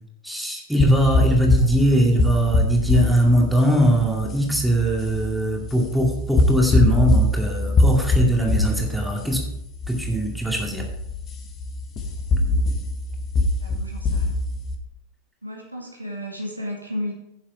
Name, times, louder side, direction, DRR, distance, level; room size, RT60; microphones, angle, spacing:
voice 1, 0.2-9.4 9.9-10.8, right 1 dB, ahead, -1 dB, 2.2 m, -21 dB
sound 1, 0.8-14.7, left 2 dB, 30° left, 1.4 m, -23 dB
voice 2, 13.6-14.4 15.4-17.1, left 1 dB, 85° right, -1 dB, 2.0 m, -33 dB
10.5 x 7.2 x 4.6 m, 0.83 s
figure-of-eight pair, 90°, 0 cm